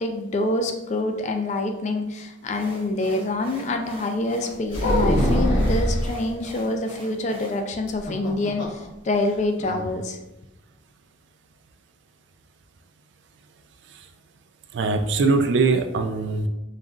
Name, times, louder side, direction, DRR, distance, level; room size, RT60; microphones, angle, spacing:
voice 1, 0.0-10.2, left 2 dB, 40° left, 5 dB, 0.4 m, -26 dB
sound 1, 2.5-7.6, right 2 dB, 30° right, 0.8 m, -42 dB
sound 2, 4.7-6.1 7.9-8.8 9.1-9.2 9.6-9.9, equal, 75° left, 1.1 m, -22 dB
voice 2, 14.7-16.5, right 3 dB, 65° right, 7 dB, 0.4 m, -22 dB
5.2 x 2.6 x 2.4 m, 0.97 s
head